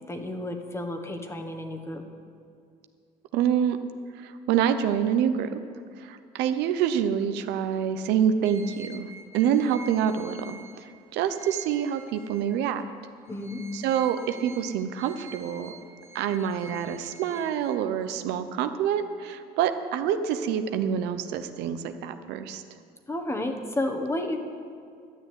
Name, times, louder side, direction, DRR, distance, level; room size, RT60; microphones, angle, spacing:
voice 1, 0.1-2.0 13.3-13.6 23.1-24.4, left 1 dB, 15° left, 5 dB, 1.3 m, -31 dB
voice 2, 3.3-3.8 4.2-5.6 6.0-10.9 11.1-12.8 13.7-15.7 16.1-22.6, right 8 dB, 90° right, 9 dB, 0.8 m, -26 dB
sound 1, 8.4-12.8 13.2-18.1, right 4 dB, 15° right, 0.8 m, -48 dB
12.5 x 6.4 x 9.4 m, 2.3 s
cardioid pair, 110°, 17 cm